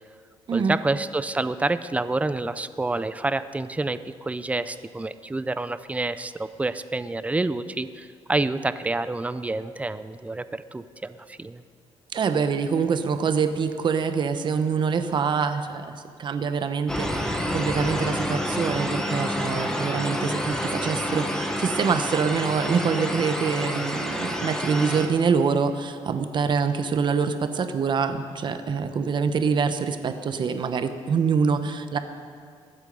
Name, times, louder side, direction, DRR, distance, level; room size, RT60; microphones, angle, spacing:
voice 1, 0.5-11.6, right 2 dB, 15° right, 13 dB, 0.5 m, -28 dB
voice 2, 12.1-32.0, right 5 dB, 45° right, 9 dB, 0.9 m, -25 dB
sound 1, 16.9-25.1, equal, 5° left, 1.3 m, -28 dB
21.5 x 8.1 x 5.4 m, 2.2 s
cardioid pair, 125°, 11 cm